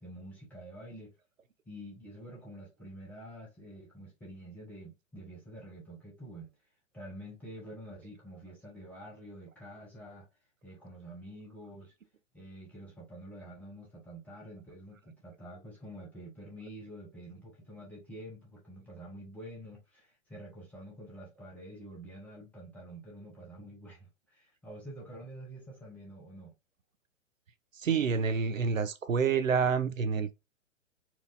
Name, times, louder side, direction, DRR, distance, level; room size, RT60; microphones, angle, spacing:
voice 1, 0.0-1.1 1.7-6.5 6.9-10.3 10.6-11.9 12.3-26.5, right 1 dB, 5° left, 0.6 m, -48 dB
voice 2, 27.7-30.3, right 5 dB, 75° right, 0.6 m, -28 dB
4.4 x 2.3 x 2.5 m
figure-of-eight pair, 120°, 40 cm